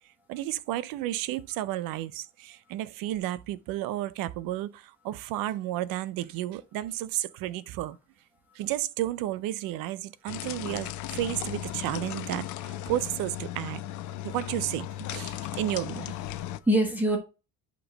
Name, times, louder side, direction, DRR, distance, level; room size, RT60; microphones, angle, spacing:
voice 1, 0.3-8.0 8.5-13.8 14.2-16.2, right 14 dB, 80° right, 0.6 m, -32 dB
sound 1, 10.3-16.6, left 13 dB, 60° left, 0.5 m, -36 dB
voice 2, 15.5-17.2, right 1 dB, 5° right, 0.9 m, -28 dB
8.8 x 3.1 x 5.1 m
cardioid pair, 180°, 34 cm